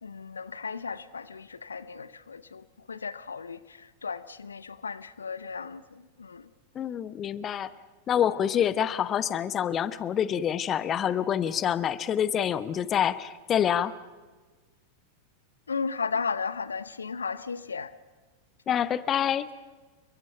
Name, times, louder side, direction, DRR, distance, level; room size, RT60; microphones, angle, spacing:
voice 1, 0.0-6.5 15.7-17.9, left 5 dB, 75° left, 0.8 m, -35 dB
voice 2, 6.7-7.7 8.1-13.9 18.7-19.5, left 9 dB, 25° left, 1.0 m, -27 dB
29.5 x 23.5 x 5.7 m
figure-of-eight pair, 90°, 0 cm